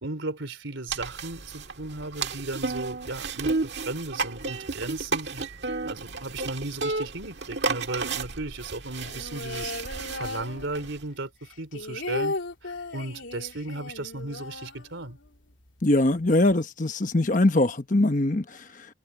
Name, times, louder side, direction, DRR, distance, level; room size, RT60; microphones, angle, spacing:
voice 1, 0.0-5.5 5.8-9.7 10.1-12.4 12.6-15.2, right 2 dB, 80° right, 3.6 m, -36 dB
sound 1, 0.9-11.0, right 3 dB, 60° right, 1.8 m, -32 dB
sound 2, 9.0-11.1 11.4-15.4 15.7-15.8 16.0-16.5, left 2 dB, 80° left, 3.2 m, -36 dB
voice 2, 15.8-18.9, left 2 dB, 40° left, 1.1 m, -22 dB
head